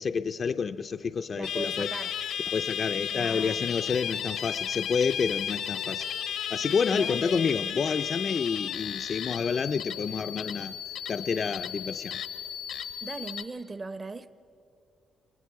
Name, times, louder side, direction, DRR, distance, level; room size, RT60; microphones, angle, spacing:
voice 1, 0.0-1.9 2.5-6.1 6.5-10.8 11.1-12.2, left 5 dB, 45° left, 0.5 m, -29 dB
voice 2, 1.3-2.1 3.1-3.7 6.9-7.6 13.0-14.3, right 3 dB, 30° right, 0.8 m, -39 dB
sound 1, 1.4-13.4, left 9 dB, 80° left, 0.8 m, -34 dB
29.0 x 20.0 x 4.7 m
cardioid pair, 90°, 0 cm